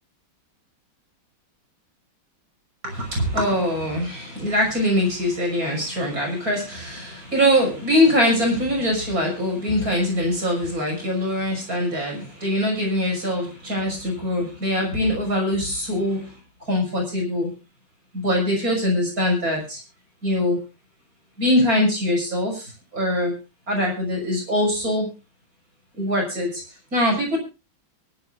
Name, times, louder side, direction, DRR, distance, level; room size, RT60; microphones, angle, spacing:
voice 1, 2.8-16.3 16.7-17.5 18.1-19.8 20.2-20.6 21.4-22.7 22.9-23.3 23.7-25.1 26.0-26.6 26.9-27.4, left 1 dB, 45° right, 0 dB, 6.7 m, -22 dB
23.5 x 12.5 x 2.5 m, 0.30 s
omnidirectional pair, 2.2 m